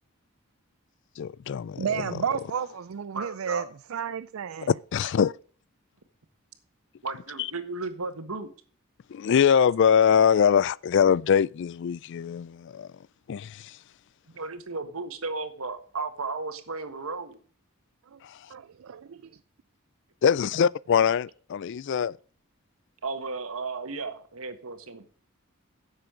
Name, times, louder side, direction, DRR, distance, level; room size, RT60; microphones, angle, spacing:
voice 1, 1.2-2.1 4.6-5.3 9.1-12.9 13.3-13.8 18.2-18.4 20.2-22.2, left 7 dB, 60° left, 0.3 m, -23 dB
voice 2, 1.8-3.6 3.9-4.7 18.1-18.2 18.5-19.2, right 7 dB, 70° right, 0.4 m, -32 dB
voice 3, 3.1-3.6 7.0-8.5 14.3-17.4 23.0-25.1, right 3 dB, 85° right, 1.5 m, -34 dB
10.5 x 7.4 x 5.0 m
head